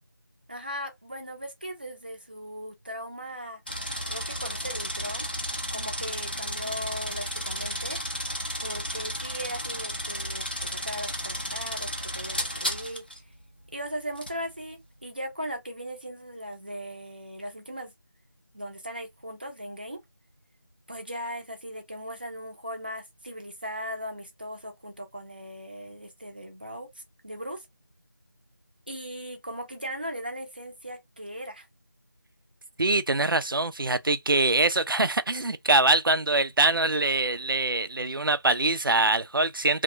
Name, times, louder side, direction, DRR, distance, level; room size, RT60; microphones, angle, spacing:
voice 1, 0.5-3.6 4.1-5.3 5.7-8.0 8.6-13.0 13.7-17.9 18.5-20.0 20.9-26.9 27.2-27.6 28.9-31.7, equal, 25° right, 0.6 m, -38 dB
sound 1, 3.7-13.2 14.2-14.3, equal, 25° left, 0.4 m, -33 dB
voice 2, 32.8-39.8, right 2 dB, 80° right, 0.5 m, -24 dB
2.9 x 2.3 x 2.5 m
figure-of-eight pair, 170°, 11 cm